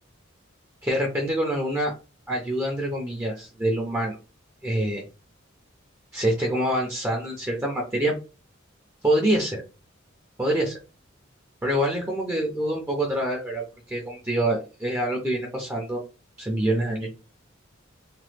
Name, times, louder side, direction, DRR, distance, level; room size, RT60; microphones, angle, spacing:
voice 1, 0.8-1.9 2.3-4.2 4.6-5.0 6.1-8.1 9.0-9.6 10.4-10.8 11.6-13.6 13.9-16.0 16.4-17.1, right 1 dB, 10° right, -1 dB, 0.6 m, -25 dB
2.9 x 2.2 x 3.2 m, 0.31 s
head